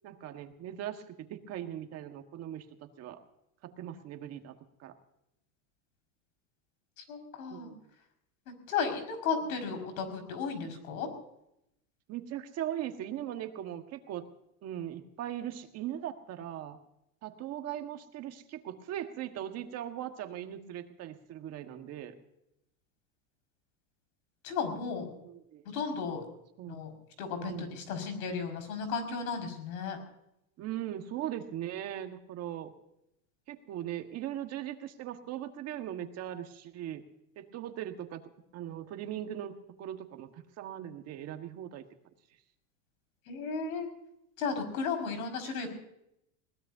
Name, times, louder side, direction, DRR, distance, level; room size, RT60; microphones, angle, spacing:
voice 1, 0.0-3.2 3.6-4.9 7.5-7.8 9.4-9.5 12.1-14.3 14.6-16.8 17.2-22.1 25.2-25.6 26.6-26.8 27.4-27.8 30.6-32.7 33.5-37.0 37.4-38.2 38.5-40.3 40.6-41.8, right 11 dB, 35° right, 6 dB, 1.5 m, -39 dB
voice 2, 7.1-7.7 8.7-11.1 24.4-25.1 25.7-26.2 26.7-26.9 27.2-30.0 43.3-43.9 44.4-45.7, left 5 dB, 85° left, 7 dB, 5.5 m, -34 dB
22.0 x 19.5 x 2.7 m, 0.80 s
supercardioid pair, 155°, 42 cm